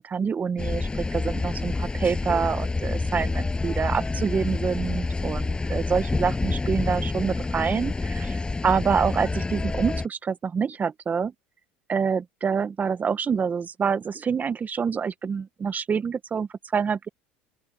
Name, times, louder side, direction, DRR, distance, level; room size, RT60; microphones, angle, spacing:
voice 1, 0.0-11.3 11.9-17.1, right 6 dB, 30° right, 1.3 m, -27 dB
sound 1, 0.6-10.1, left 3 dB, 15° left, 7.6 m, -28 dB
open air
hypercardioid pair, 90°, 6 cm